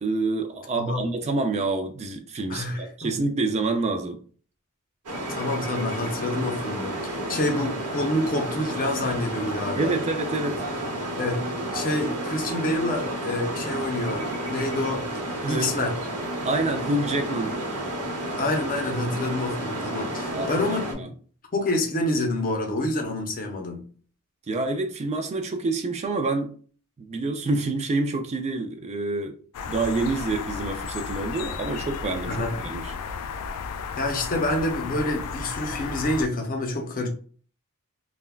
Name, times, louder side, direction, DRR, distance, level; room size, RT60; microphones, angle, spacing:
voice 1, 0.0-4.2 9.8-10.6 15.4-15.8 16.4-17.6 20.3-20.5 21.0-21.1 24.5-26.5 27.0-29.3 29.7-32.4 32.6-32.9, right 3 dB, 30° right, 0.3 m, -27 dB
voice 2, 0.8-1.1 2.5-3.2 5.3-10.0 11.2-11.4 11.7-15.1 15.5-16.0 18.4-21.1 21.5-23.9 32.3-32.5 34.0-37.1, left 1 dB, 40° left, 0.6 m, -27 dB
sound 1, 5.1-20.9, right 1 dB, 75° right, 0.9 m, -31 dB
sound 2, 29.5-36.3, left 5 dB, 85° left, 0.3 m, -34 dB
3.4 x 2.2 x 2.3 m
head